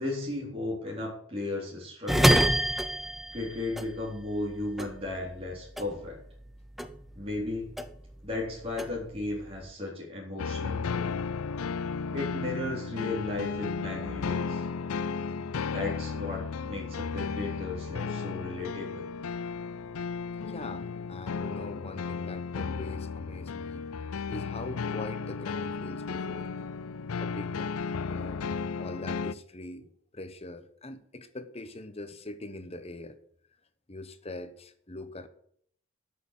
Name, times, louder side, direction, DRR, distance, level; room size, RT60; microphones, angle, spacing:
voice 1, 0.0-2.4 3.3-6.2 7.2-7.7 8.2-11.2 12.1-14.7 15.7-19.1, left 2 dB, 25° right, 3.7 m, -35 dB
sound 1, 2.1-4.5 4.8-6.5 6.8-8.2 8.5-9.7, equal, ahead, 0.5 m, -27 dB
sound 2, 10.4-29.3, left 5 dB, 80° left, 0.5 m, -34 dB
voice 2, 20.4-23.9 24.3-26.5 27.2-33.2 33.9-35.3, left 2 dB, 30° left, 0.9 m, -42 dB
12.5 x 6.6 x 6.8 m
head